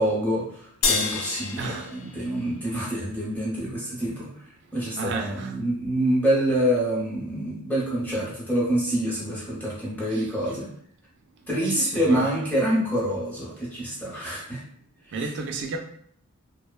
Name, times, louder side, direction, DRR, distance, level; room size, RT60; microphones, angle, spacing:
voice 1, 0.0-4.3 4.7-10.7 11.5-14.6, right 1 dB, 10° left, 0.7 m, -26 dB
sound 1, 0.8-3.4, left 4 dB, 65° left, 0.3 m, -29 dB
voice 2, 1.6-1.9 5.0-5.5 10.1-10.5 11.6-12.3 15.1-15.8, right 3 dB, 50° right, 0.3 m, -33 dB
2.8 x 2.0 x 2.3 m
head